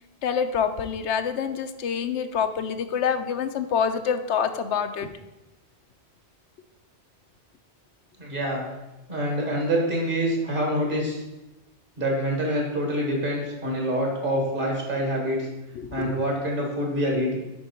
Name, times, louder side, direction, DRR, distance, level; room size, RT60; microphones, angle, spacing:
voice 1, 0.2-5.1 15.8-16.2, left 7 dB, 80° left, 8 dB, 0.9 m, -26 dB
voice 2, 8.2-8.6 9.1-11.2 12.0-15.5 15.9-17.3, equal, 50° right, -1 dB, 2.1 m, -26 dB
9.9 x 4.4 x 4.4 m, 1.0 s
omnidirectional pair, 1.2 m